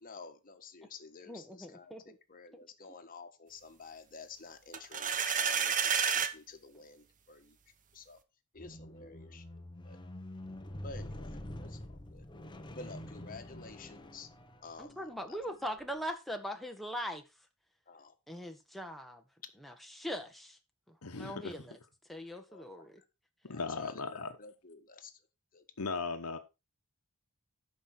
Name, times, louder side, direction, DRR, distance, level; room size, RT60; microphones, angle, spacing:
voice 1, 0.0-7.6 7.9-8.2 8.5-9.4 9.8-10.0 10.8-12.2 12.7-14.3 14.6-15.6 17.9-18.1 22.5-22.9 23.5-25.2 25.5-25.6, left 4 dB, 40° left, 1.5 m, -51 dB
voice 2, 1.3-2.1 14.8-17.2 18.3-19.2 19.6-20.6 20.9-21.8 22.1-23.0, equal, ahead, 1.4 m, -41 dB
sound 1, 4.7-6.3, right 7 dB, 35° right, 0.8 m, -30 dB
Squeak, 8.6-14.9 15.7-15.8, left 1 dB, 20° left, 0.9 m, -46 dB
voice 3, 21.0-21.5 23.5-24.3 25.8-26.4, left 4 dB, 90° left, 1.2 m, -37 dB
12.5 x 5.4 x 4.3 m
head